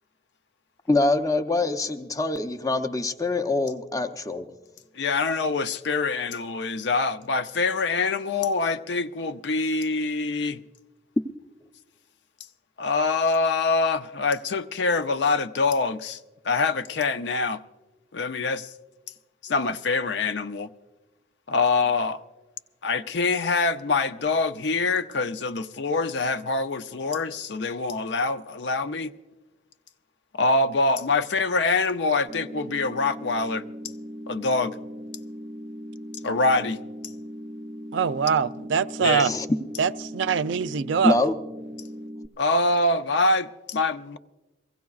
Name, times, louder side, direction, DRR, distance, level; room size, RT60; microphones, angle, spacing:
voice 1, 0.9-4.5 39.1-39.5 41.0-41.3, left 2 dB, 20° left, 0.6 m, -24 dB
voice 2, 4.9-10.6 12.8-16.2 16.4-17.6 18.1-18.7 19.4-20.7 21.5-22.2 22.8-29.1 30.3-33.6 34.3-34.8 36.2-36.8 39.0-39.2 42.4-44.2, left 3 dB, 70° left, 0.5 m, -25 dB
sound 1, 32.3-42.3, equal, 35° right, 0.5 m, -39 dB
voice 3, 37.9-39.3 39.8-41.2, right 6 dB, 80° right, 0.4 m, -23 dB
23.5 x 16.5 x 2.4 m
head